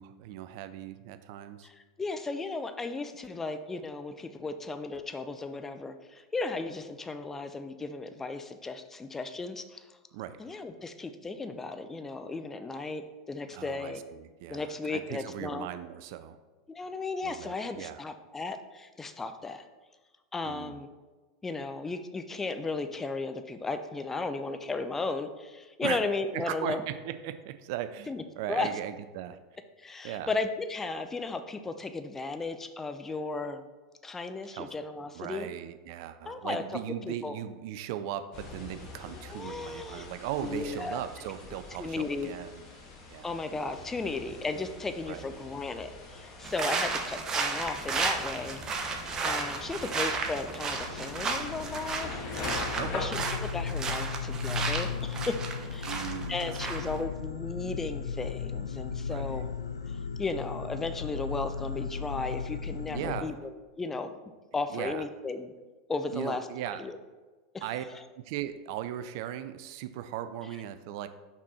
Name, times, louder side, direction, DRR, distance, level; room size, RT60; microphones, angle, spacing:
voice 1, 0.0-1.7 10.1-10.4 13.5-16.4 17.2-18.0 20.4-20.8 25.8-26.0 26.3-29.4 30.0-30.3 34.5-34.7 35.1-42.7 43.1-43.3 45.1-45.3 52.8-53.1 55.9-56.4 57.0-57.1 59.1-59.4 62.9-63.4 64.7-65.1 66.1-66.8 67.6-67.8 68.2-71.1, right 11 dB, 55° right, 11 dB, 0.4 m, -38 dB
voice 2, 1.6-9.9 10.4-14.0 14.5-15.7 16.7-19.6 20.3-20.9 21.4-26.8 28.1-28.7 29.8-33.6 34.0-35.5 36.3-36.8 37.1-37.4 39.1-40.1 40.4-41.0 41.8-42.3 43.2-52.2 52.9-59.5 59.9-64.1 64.5-65.5 65.9-66.5 66.7-67.0 67.5-67.6 67.9-68.0, left 3 dB, 15° left, 9 dB, 0.5 m, -35 dB
sound 1, 38.3-53.0, left 3 dB, 40° left, 1.7 m, -44 dB
sound 2, 46.4-57.0, right 4 dB, 30° right, 0.9 m, -33 dB
sound 3, 49.6-63.2, left 6 dB, 85° left, 0.3 m, -36 dB
6.0 x 4.2 x 4.2 m, 1.3 s
hypercardioid pair, 90°, 2 cm